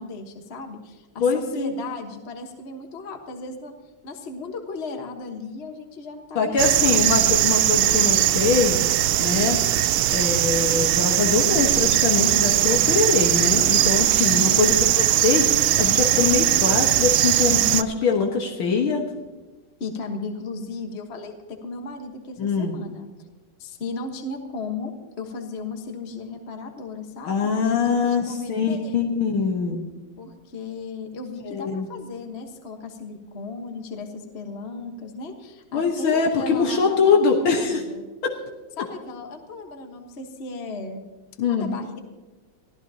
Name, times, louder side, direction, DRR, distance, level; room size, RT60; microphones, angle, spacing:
voice 1, 0.0-3.7 4.0-7.1 14.2-14.8 19.8-23.1 23.6-29.1 30.2-38.1 38.8-41.1 41.4-42.0, left 3 dB, 35° left, 3 dB, 1.4 m, -36 dB
voice 2, 1.2-1.7 6.4-8.8 9.2-19.0 22.4-22.7 27.3-29.8 31.5-31.9 35.7-37.8 38.2-38.3 41.4-41.8, left 5 dB, 80° left, 1 dB, 2.2 m, -23 dB
sound 1, 6.6-17.8, right 13 dB, 80° right, 1.4 m, -20 dB
23.5 x 15.0 x 2.8 m, 1.2 s
omnidirectional pair, 2.3 m